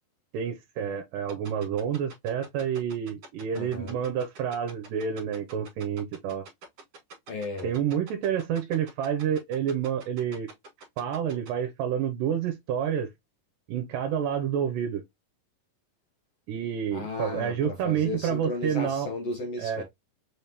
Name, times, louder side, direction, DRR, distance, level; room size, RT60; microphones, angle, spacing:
voice 1, 0.3-6.5 7.6-10.5 11.0-13.1 13.7-15.0 16.5-19.1 19.6-19.8, right 8 dB, 80° right, 2.2 m, -29 dB
sound 1, 1.3-11.5, right 4 dB, 50° right, 2.6 m, -45 dB
voice 2, 3.5-4.0 7.3-7.7 16.9-19.8, left 3 dB, 80° left, 1.4 m, -34 dB
5.5 x 3.4 x 2.8 m
omnidirectional pair, 4.1 m